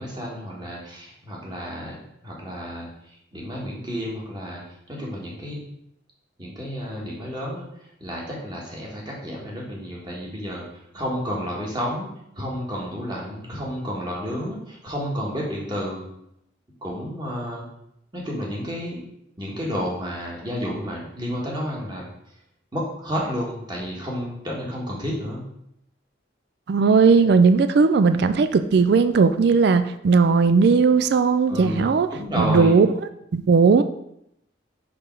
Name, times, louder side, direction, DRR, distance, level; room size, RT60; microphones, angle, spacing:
voice 1, 0.0-4.6 4.9-5.7 6.4-12.1 12.4-16.1 16.8-17.6 18.1-19.0 19.4-22.1 22.7-25.5 31.5-32.8, equal, 25° right, -3 dB, 1.7 m, -31 dB
voice 2, 26.7-32.1 32.4-32.9 33.3-33.8, right 5 dB, 60° right, 11 dB, 0.3 m, -17 dB
5.9 x 5.0 x 4.6 m, 0.77 s
head